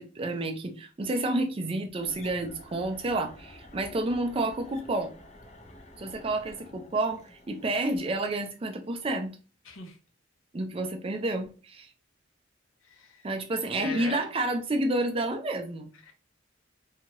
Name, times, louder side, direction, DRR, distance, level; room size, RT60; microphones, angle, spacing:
voice 1, 0.0-5.1 6.0-9.3 10.5-11.9 13.2-15.9, right 2 dB, 30° right, 0.4 m, -30 dB
sound 1, 2.0-8.4, left 1 dB, 35° left, 0.5 m, -51 dB
voice 2, 9.6-10.0 12.8-13.3 13.8-14.3 16.1-16.2, left 4 dB, 80° left, 0.8 m, -39 dB
2.8 x 2.4 x 2.9 m
head